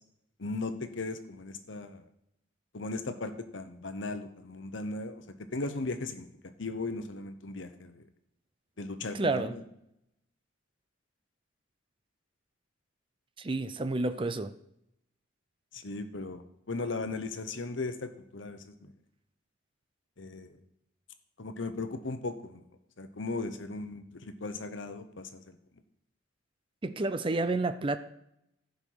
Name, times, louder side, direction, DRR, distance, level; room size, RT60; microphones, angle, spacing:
voice 1, 0.4-2.0 2.7-5.2 5.5-6.3 6.6-8.0 8.8-9.6 15.8-16.4 16.7-18.7 20.2-20.6 21.4-22.6 23.0-25.4, left 3 dB, 70° left, 0.9 m, -37 dB
voice 2, 9.1-9.6 13.4-14.5 26.8-28.0, right 2 dB, 25° right, 0.5 m, -30 dB
15.0 x 5.4 x 4.7 m
head